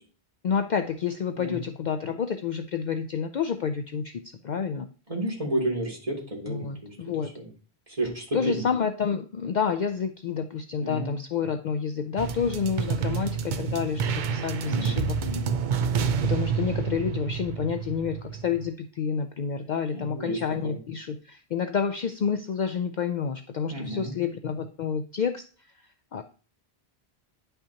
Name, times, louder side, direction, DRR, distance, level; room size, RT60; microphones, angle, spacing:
voice 1, 0.4-4.9 6.5-7.3 8.3-15.2 16.2-25.4 26.1-26.2, left 6 dB, 55° left, 8 dB, 0.6 m, -29 dB
voice 2, 5.1-6.9 7.3-7.5 7.9-8.6 10.8-11.1 14.6-15.5 19.9-20.8 23.7-24.2, right 1 dB, 35° right, -2 dB, 2.8 m, -31 dB
sound 1, 12.2-18.7, right 6 dB, 55° right, 0.6 m, -28 dB
10.5 x 5.6 x 2.8 m, 0.39 s
omnidirectional pair, 1.1 m